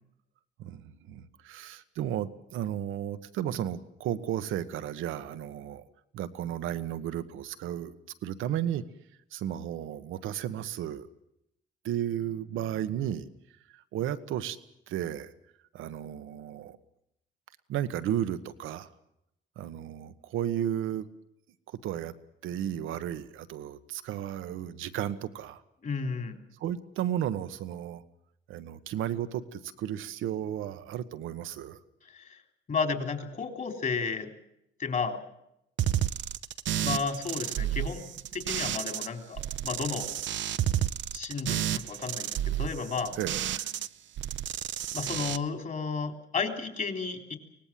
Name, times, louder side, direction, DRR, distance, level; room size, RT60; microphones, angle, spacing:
voice 1, 0.6-5.8 6.1-7.9 8.2-8.8 9.3-11.1 11.8-13.3 13.7-14.6 14.9-15.3 15.7-16.8 17.7-18.9 19.6-21.0 21.7-22.1 22.4-25.6 26.6-28.0 28.5-31.8 43.2-43.7, right 11 dB, 90° right, 11 dB, 1.3 m, -33 dB
voice 2, 25.8-26.4 32.1-32.4 32.7-34.3 34.8-35.2 36.8-38.0 38.3-40.1 41.1-43.2 44.9-47.4, left 5 dB, 45° left, 5 dB, 3.6 m, -32 dB
sound 1, 35.8-39.1 39.4-43.9 44.2-45.4, right 11 dB, 70° right, 0.9 m, -31 dB
24.0 x 18.5 x 7.6 m, 0.80 s
cardioid pair, 90°, 20 cm